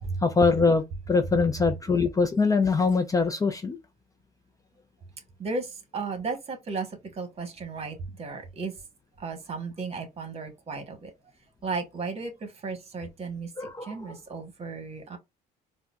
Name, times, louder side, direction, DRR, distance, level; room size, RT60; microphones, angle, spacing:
voice 1, 0.2-3.8 13.6-14.2, left 4 dB, 20° left, 0.5 m, -23 dB
voice 2, 5.4-8.7 9.2-11.1 11.6-15.2, right 4 dB, 35° right, 1.3 m, -35 dB
4.3 x 2.2 x 2.4 m
cardioid pair, 110°, 17 cm